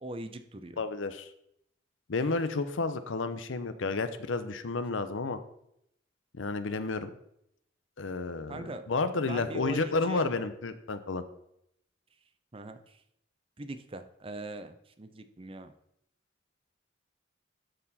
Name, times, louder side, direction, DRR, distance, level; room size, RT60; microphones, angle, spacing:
voice 1, 0.0-0.8 8.5-8.9 9.2-10.3 12.5-13.0 13.6-15.7, right 2 dB, 30° right, 9 dB, 0.6 m, -41 dB
voice 2, 0.8-1.3 2.1-5.4 6.3-7.1 8.0-11.2, left 3 dB, 90° left, 11 dB, 0.7 m, -31 dB
13.0 x 4.5 x 4.1 m, 0.76 s
head